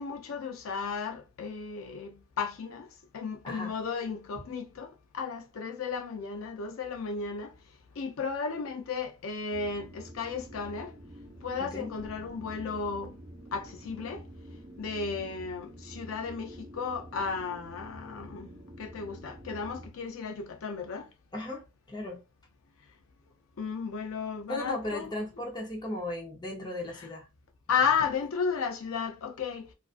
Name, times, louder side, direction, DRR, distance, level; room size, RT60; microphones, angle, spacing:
voice 1, 0.0-2.9 3.1-7.5 8.0-10.9 11.4-13.2 13.5-14.2 14.8-18.5 18.8-21.1 23.6-25.1 27.0-27.1 27.7-29.7, left 5 dB, 80° left, 0.4 m, -34 dB
sound 1, 9.5-19.9, right 1 dB, 45° right, 0.7 m, -47 dB
voice 2, 11.6-11.9 21.3-22.2 24.5-27.3, left 1 dB, 20° left, 0.7 m, -36 dB
2.5 x 2.4 x 2.4 m
head